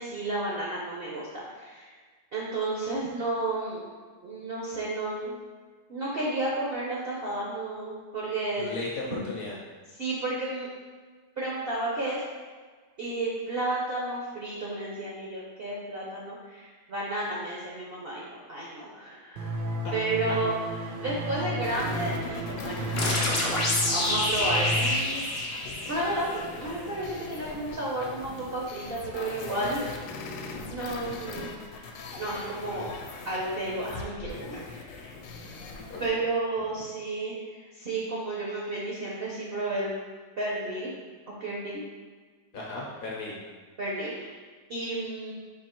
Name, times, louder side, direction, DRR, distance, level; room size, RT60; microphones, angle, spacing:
voice 1, 0.0-1.9 2.3-3.8 4.2-5.4 5.9-8.8 10.0-10.7 11.4-12.2 13.0-19.6 19.9-20.5 20.8-22.9 23.5-25.2 25.9-30.0 30.7-35.1 36.0-39.9 40.4-40.9 41.4-41.8 43.8-44.3 44.7-45.3, right 2 dB, 65° right, -5 dB, 0.5 m, -32 dB
voice 2, 8.6-9.6 35.9-36.2 42.5-43.4, left 2 dB, 60° left, -4 dB, 0.9 m, -36 dB
sound 1, 19.4-24.9, equal, 85° right, 1.4 m, -33 dB
sound 2, 21.6-36.1, left 4 dB, 80° left, 1.2 m, -40 dB
sound 3, 23.0-26.5, left 1 dB, 40° left, 0.6 m, -27 dB
4.5 x 2.8 x 4.3 m, 1.5 s
omnidirectional pair, 2.0 m